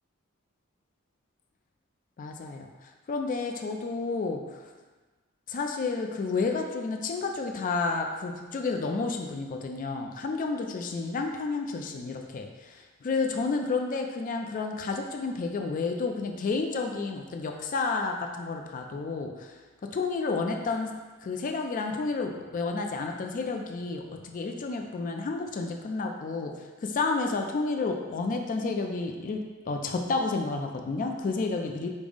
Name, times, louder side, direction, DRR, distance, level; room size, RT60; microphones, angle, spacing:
voice 1, 2.2-4.7 5.5-19.6 19.8-20.9 21.2-26.5 26.8-29.4 29.7-31.9, left 4 dB, 40° left, 3 dB, 0.3 m, -31 dB
5.2 x 2.0 x 4.8 m, 1.3 s
head